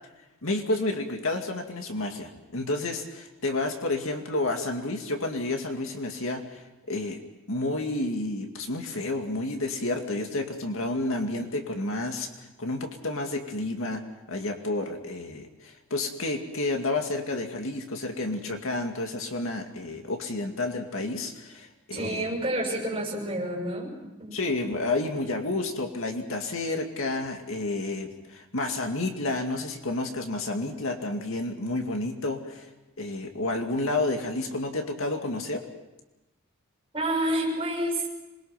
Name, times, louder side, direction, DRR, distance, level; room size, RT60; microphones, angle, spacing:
voice 1, 0.4-6.6 6.9-7.2 7.5-12.3 12.6-14.0 14.3-22.3 24.3-32.7 33.0-35.7, left 2 dB, 65° left, 4 dB, 2.3 m, -30 dB
voice 2, 21.9-23.9 24.2-24.4 36.9-38.1, right 1 dB, 25° right, 0 dB, 6.6 m, -29 dB
27.0 x 22.0 x 5.9 m, 1.0 s
head